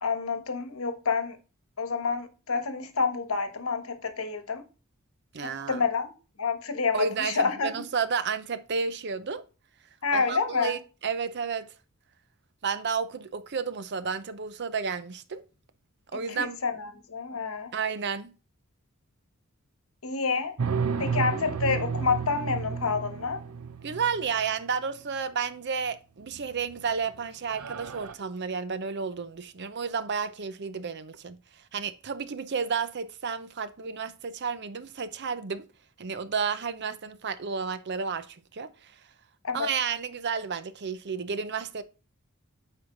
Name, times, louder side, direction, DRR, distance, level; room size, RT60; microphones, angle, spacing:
voice 1, 0.0-1.4 1.8-4.6 5.4-6.1 6.4-7.8 10.0-10.8 16.3-17.7 20.0-20.5 21.0-23.4 39.4-39.7, left 5 dB, 70° left, 1.1 m, -28 dB
voice 2, 5.3-5.8 6.9-9.4 10.1-11.7 12.6-15.4 16.1-16.6 17.7-18.3 23.8-31.4 31.7-35.7 36.0-38.9 39.5-41.8, right 5 dB, 50° right, 0.6 m, -31 dB
sound 1, 20.6-24.5 26.3-26.8 27.1-27.2 27.5-28.1, right 6 dB, 90° right, 0.6 m, -32 dB
8.7 x 4.5 x 3.8 m
head